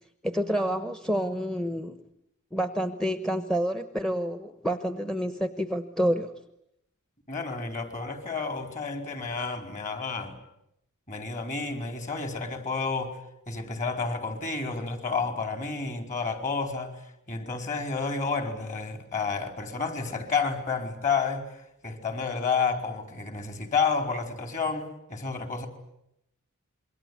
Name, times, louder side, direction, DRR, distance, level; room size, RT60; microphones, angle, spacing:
voice 1, 0.2-2.0 2.5-6.3, equal, 5° left, 1.0 m, -28 dB
voice 2, 7.3-10.4 11.1-13.2 13.5-17.0 17.3-25.7, left 5 dB, 35° left, 4.6 m, -30 dB
27.0 x 23.0 x 9.7 m
head